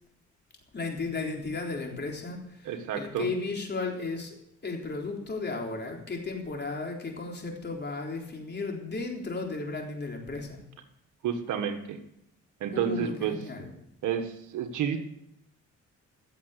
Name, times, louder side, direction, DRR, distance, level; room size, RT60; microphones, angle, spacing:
voice 1, 0.7-4.4 4.6-10.6 12.7-13.7, left 3 dB, 35° left, 1 dB, 3.8 m, -34 dB
voice 2, 2.7-3.3 11.2-12.0 12.6-13.4 14.0-15.0, right 8 dB, 80° right, 7 dB, 1.6 m, -30 dB
16.0 x 7.2 x 8.3 m, 0.80 s
cardioid pair, 90°, 30 cm